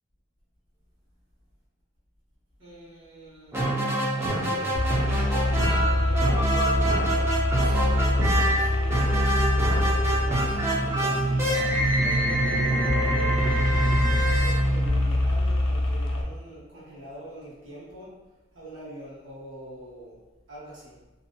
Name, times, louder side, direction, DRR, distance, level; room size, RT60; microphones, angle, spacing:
voice 1, 2.6-3.7 4.3-7.1 7.6-13.9 14.4-18.1 18.5-20.2 20.5-21.0, right 1 dB, 75° right, -9 dB, 1.2 m, -43 dB
sound 1, 3.5-15.4, right 1 dB, 15° right, 0.4 m, -26 dB
sound 2, 4.8-16.2, left 1 dB, 85° left, 0.4 m, -25 dB
2.6 x 2.2 x 2.6 m, 1.1 s
head